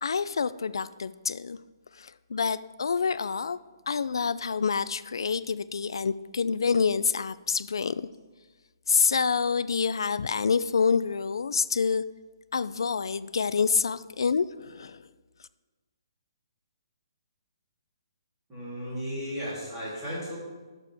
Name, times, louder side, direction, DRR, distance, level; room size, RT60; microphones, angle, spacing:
voice 1, 0.0-1.6 1.9-3.6 3.9-8.1 8.9-12.0 12.5-15.0, left 5 dB, 85° left, 15 dB, 0.4 m, -27 dB
voice 2, 18.5-20.4, equal, 10° right, -9 dB, 3.3 m, -35 dB
16.5 x 6.8 x 3.5 m, 1.3 s
hypercardioid pair, 175°, 2 cm